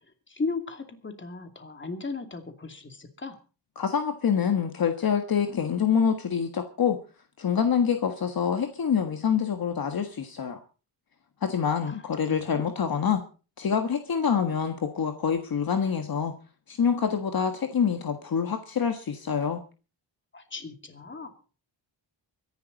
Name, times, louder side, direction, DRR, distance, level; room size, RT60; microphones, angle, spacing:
voice 1, 0.3-3.4 11.8-12.0 12.3-12.7 20.3-21.3, left 3 dB, 25° left, 6 dB, 2.6 m, -36 dB
voice 2, 3.7-7.0 7.4-10.6 11.4-13.2 13.6-16.4 16.7-19.6, left 7 dB, 50° left, 6 dB, 1.6 m, -26 dB
24.0 x 11.0 x 4.1 m, 0.36 s
wide cardioid pair, 115°, 44 cm